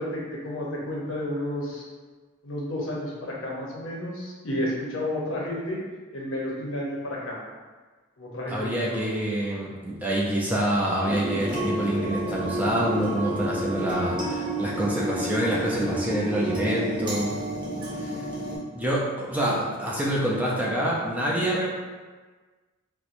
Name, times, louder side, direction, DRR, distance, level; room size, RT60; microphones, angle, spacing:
voice 1, 0.0-1.8 2.4-5.8 6.1-7.4 8.2-9.0, left 1 dB, 70° left, -4 dB, 0.8 m, -31 dB
voice 2, 8.5-17.4 17.9-18.2 18.7-21.8, right 1 dB, 10° right, -6 dB, 0.4 m, -26 dB
sound 1, 11.0-18.6, right 1 dB, 25° right, 0.8 m, -30 dB
4.3 x 2.1 x 2.6 m, 1.4 s
head